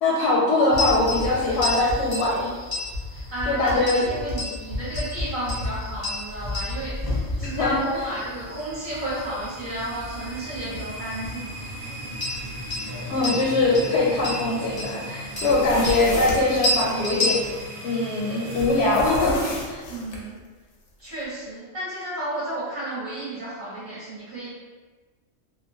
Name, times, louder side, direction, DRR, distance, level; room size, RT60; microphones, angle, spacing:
voice 1, 0.0-2.5 3.5-4.0 7.4-8.0 13.1-17.4 17.8-19.4 19.7-19.8, left 2 dB, 65° left, -5 dB, 0.8 m, -22 dB
voice 2, 0.6-1.0 3.1-11.7 19.8-20.3 21.0-24.5, right 1 dB, 40° right, -11 dB, 1.0 m, -32 dB
sound 1, 0.7-17.6, left 2 dB, 30° left, 0.4 m, -31 dB
sound 2, 7.6-19.3, right 1 dB, 70° right, 0.9 m, -38 dB
sound 3, 15.2-16.9 18.4-20.2, equal, 90° left, 1.0 m, -33 dB
2.9 x 2.2 x 2.6 m, 1.4 s
omnidirectional pair, 1.3 m